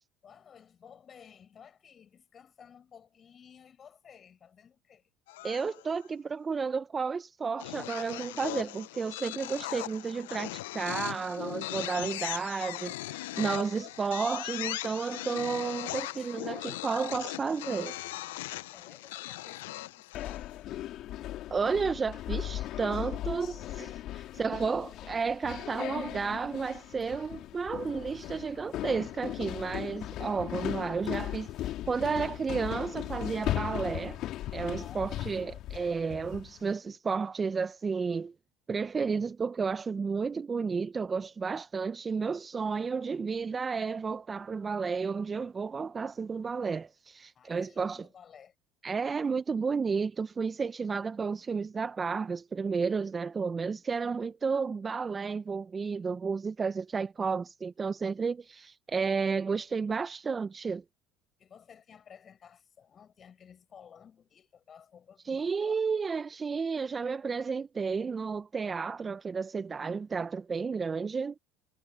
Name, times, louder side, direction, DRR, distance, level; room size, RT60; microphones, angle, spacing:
voice 1, 0.2-5.1 16.2-16.4 18.7-20.6 24.3-25.1 29.6-30.2 34.8-35.1 35.4-35.6 47.3-48.5 61.4-65.8 66.1-66.4, left 7 dB, 40° left, 7.4 m, -55 dB
sound 1, 5.3-6.1 7.6-20.6, left 18 dB, 80° left, 0.5 m, -39 dB
voice 2, 5.4-18.0 21.5-34.2 34.5-38.3 38.7-48.1 48.8-60.8 65.2-71.4, right 5 dB, 25° right, 0.9 m, -32 dB
sound 2, 20.1-36.6, left 14 dB, 55° left, 2.9 m, -37 dB
hypercardioid pair, 80°, 0 cm